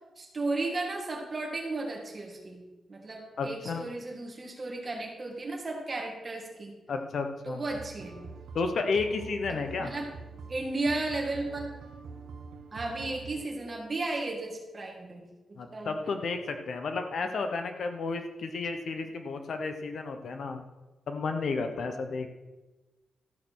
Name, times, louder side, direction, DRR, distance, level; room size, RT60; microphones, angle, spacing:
voice 1, 0.2-6.8 7.4-8.2 9.5-10.1 10.5-11.8 12.7-16.3, right 2 dB, 25° right, 0 dB, 2.2 m, -35 dB
voice 2, 3.4-3.9 6.9-7.6 8.5-9.9 15.6-20.6 21.1-22.3, left 4 dB, 55° left, 6 dB, 1.0 m, -32 dB
sound 1, 7.7-13.4, right 4 dB, 85° right, 1.2 m, -45 dB
13.5 x 6.6 x 6.3 m, 1.1 s
wide cardioid pair, 175°, 0 cm